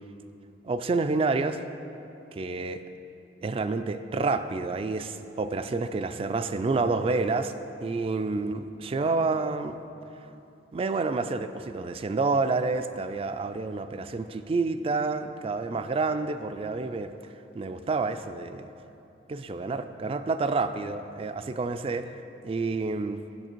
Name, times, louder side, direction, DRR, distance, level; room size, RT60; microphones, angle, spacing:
voice 1, 0.6-1.6 2.3-2.8 3.4-9.8 10.7-17.1 17.5-18.7 19.3-22.1 22.4-23.2, right 3 dB, 30° right, 10 dB, 0.3 m, -29 dB
10.5 x 6.7 x 4.5 m, 2.9 s
head